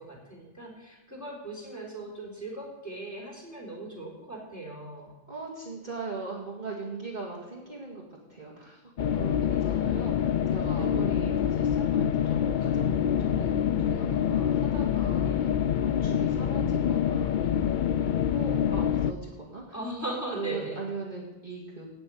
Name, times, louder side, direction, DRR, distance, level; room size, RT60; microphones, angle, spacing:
voice 1, 0.0-5.1 9.5-9.8 10.7-10.9 15.2-15.4 19.7-20.8, right 2 dB, 10° left, -4 dB, 3.8 m, -38 dB
voice 2, 5.3-8.0 8.3-8.8 9.1-15.5 16.0-18.1 18.3-19.6 20.3-21.9, right 3 dB, 35° right, -5 dB, 2.1 m, -40 dB
sound 1, 9.0-19.1, left 9 dB, 90° left, 0.4 m, -26 dB
8.6 x 8.1 x 9.2 m, 1.0 s
omnidirectional pair, 1.4 m